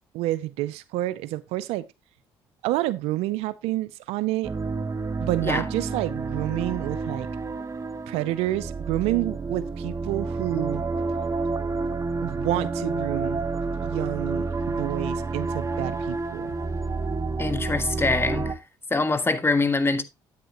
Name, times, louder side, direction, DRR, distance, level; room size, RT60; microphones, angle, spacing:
voice 1, 0.1-1.9 2.6-4.5 5.2-7.3 8.1-10.8 12.2-13.5 13.8-16.6, right 16 dB, 80° right, 0.5 m, -28 dB
sound 1, 4.4-18.5, right 3 dB, 30° right, 1.1 m, -29 dB
voice 2, 17.4-18.6 18.9-20.0, left 3 dB, 25° left, 1.4 m, -24 dB
9.6 x 8.8 x 2.9 m
supercardioid pair, 65°, 10 cm